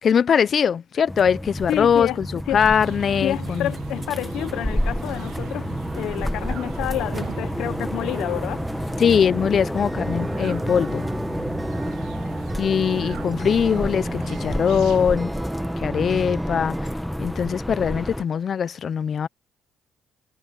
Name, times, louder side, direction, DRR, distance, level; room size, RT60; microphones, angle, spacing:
voice 1, 0.0-3.7 9.0-11.1 12.6-15.3 15.8-16.9 17.2-19.3, left 7 dB, 50° left, 0.7 m, -21 dB
sound 1, 1.1-18.2, equal, ahead, 1.6 m, -29 dB
voice 2, 1.7-2.2 2.5-2.6 3.2-5.7 5.9-8.6, left 13 dB, 80° left, 1.0 m, -29 dB
sound 2, 2.8-15.2, right 14 dB, 80° right, 0.8 m, -40 dB
Acoustic guitar, 9.8-16.9, right 3 dB, 20° right, 3.2 m, -36 dB
cardioid pair, 80°, 0 cm